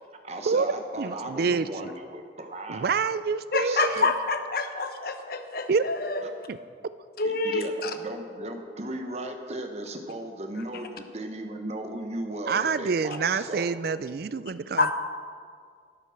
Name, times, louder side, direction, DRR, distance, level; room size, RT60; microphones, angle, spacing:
voice 1, 0.2-2.9 3.6-4.1 7.2-13.7, right 1 dB, 35° right, 5 dB, 1.0 m, -36 dB
voice 2, 1.0-1.9 2.7-4.1 5.7-5.8 6.5-6.6 12.5-14.9, right 5 dB, 50° right, 15 dB, 0.4 m, -27 dB
voice 3, 3.5-6.2 7.2-7.9 14.8-14.9, left 3 dB, 50° left, 7 dB, 0.9 m, -27 dB
12.0 x 8.9 x 5.8 m, 2.1 s
head